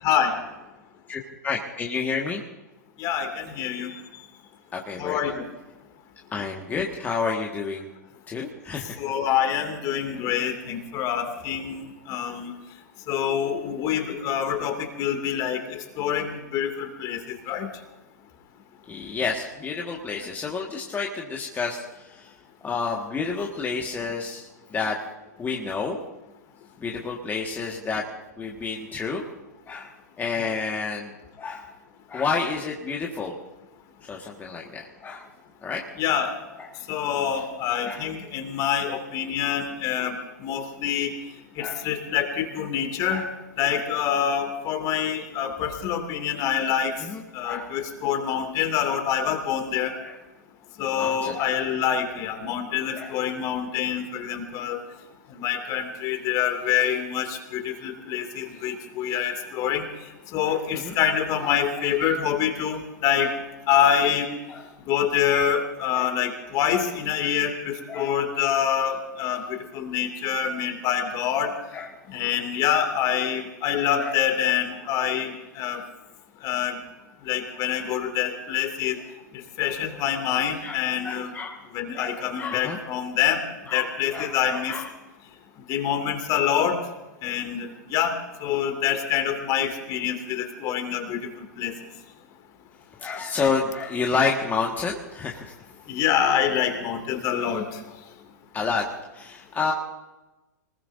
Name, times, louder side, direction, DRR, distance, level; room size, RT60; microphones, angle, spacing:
voice 1, 0.0-0.3 3.0-3.9 5.0-5.5 9.0-11.8 12.1-12.5 13.1-17.2 17.5-17.7 36.0-36.3 36.9-40.1 40.4-41.1 41.6-43.2 43.6-46.9 47.3-49.9 50.8-54.8 55.3-59.8 60.3-63.3 63.7-64.3 64.9-69.4 69.7-71.5 72.1-75.8 76.4-76.8 77.3-79.0 79.6-81.3 81.7-83.4 83.7-84.8 85.7-86.8 87.2-88.1 88.4-91.2 91.6-91.7 95.9-97.7, left 9 dB, 40° left, 4 dB, 2.6 m, -26 dB
voice 2, 1.1-2.4 4.7-5.3 6.3-7.9 8.3-9.0 18.9-22.3 22.6-25.0 25.4-26.0 26.8-28.0 28.4-29.2 29.7-31.7 32.1-33.4 34.1-35.3 35.6-35.8 36.6-36.8 37.2-37.3 37.8-38.1 41.6-41.9 43.1-43.3 47.0-47.7 50.0-50.2 50.9-51.6 52.9-53.2 60.5-60.9 61.8-61.9 64.5-64.7 65.9-66.1 67.9-68.1 71.7-71.9 74.0-74.2 77.5-77.8 79.6-80.0 80.6-81.7 81.9-82.8 83.7-84.9 93.0-95.5 98.5-98.9 99.1-99.7, left 5 dB, 20° left, -1 dB, 1.8 m, -30 dB
25.0 x 20.0 x 2.7 m, 1.1 s
figure-of-eight pair, 105°, 10 cm